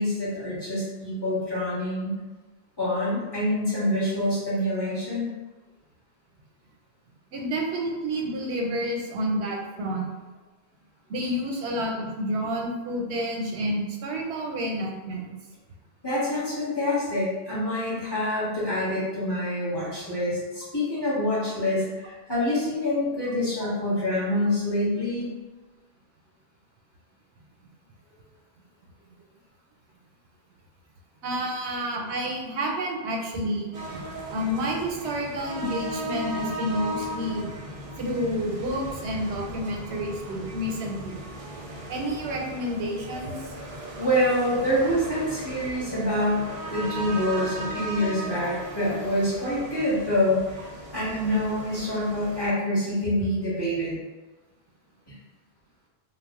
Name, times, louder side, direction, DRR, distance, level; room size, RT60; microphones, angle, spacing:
voice 1, 0.0-2.2 2.8-5.3 16.0-25.3 44.0-46.4 46.7-53.9 55.1-55.2, left 1 dB, 25° left, -10 dB, 1.0 m, -26 dB
voice 2, 7.3-10.1 11.1-15.3 31.2-37.6 38.0-41.2 41.9-43.3, equal, 90° right, 0 dB, 0.9 m, -29 dB
sound 1, 33.7-52.5, right 1 dB, 55° right, 0.3 m, -37 dB
2.3 x 2.0 x 3.5 m, 1.2 s
omnidirectional pair, 1.1 m